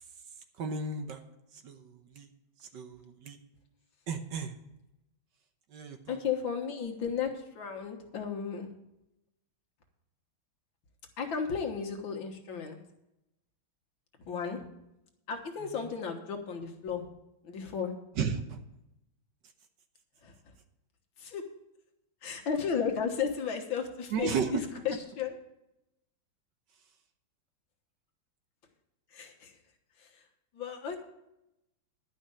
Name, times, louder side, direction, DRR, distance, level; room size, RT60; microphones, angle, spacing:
voice 1, 0.6-1.2 1.6-1.9 2.2-2.3 2.7-3.4 4.1-4.5 5.7-6.0 18.2-18.6 24.1-24.5, right 5 dB, 65° right, 7 dB, 1.5 m, -33 dB
voice 2, 6.1-8.7 11.2-12.8 14.3-14.6 15.3-17.1 17.4-17.9 20.2-20.3 21.2-21.5 22.2-25.4 29.1-29.6 30.0-30.2 30.5-31.0, left 6 dB, 70° left, 4 dB, 2.2 m, -34 dB
11.5 x 5.5 x 8.4 m, 0.87 s
omnidirectional pair, 2.3 m